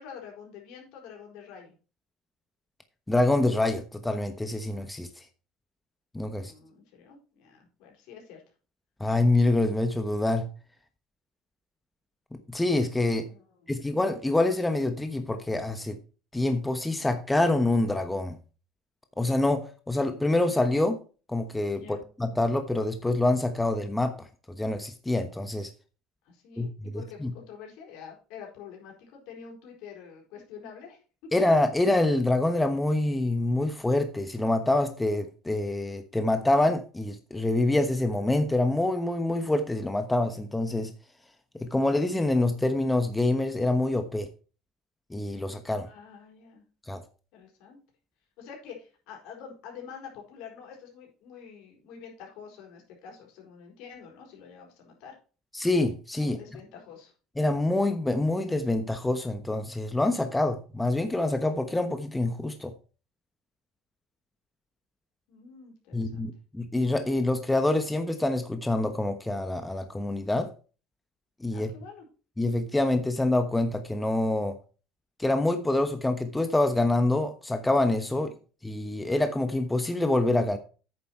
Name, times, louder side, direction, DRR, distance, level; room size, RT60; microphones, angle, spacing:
voice 1, 0.0-1.7 6.3-8.4 13.2-13.8 21.8-22.0 26.2-31.0 45.8-46.6 47.3-47.8 48.4-55.2 56.2-57.1 65.3-66.3 71.5-72.1 78.2-78.3, left 7 dB, 70° left, 4.5 m, -47 dB
voice 2, 3.1-5.2 6.1-6.5 9.0-10.5 12.3-13.3 13.7-16.0 16.3-18.4 19.2-21.0 21.3-24.3 24.6-25.7 26.6-27.3 31.3-40.9 41.6-44.3 45.1-45.9 46.9-47.0 55.5-56.4 57.4-62.7 65.9-70.5 71.4-71.7 72.4-74.6 75.2-78.3 78.6-80.6, left 2 dB, 10° left, 1.1 m, -26 dB
9.1 x 7.0 x 4.5 m
supercardioid pair, 90°, 0 cm